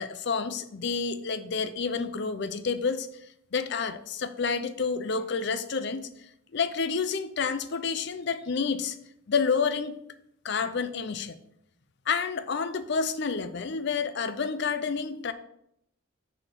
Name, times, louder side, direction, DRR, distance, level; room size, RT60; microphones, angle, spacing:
voice 1, 0.0-6.1 6.5-9.0 9.3-10.0 10.4-11.4 12.1-15.3, left 5 dB, 50° left, 11 dB, 0.5 m, -29 dB
6.7 x 4.2 x 5.8 m, 0.76 s
head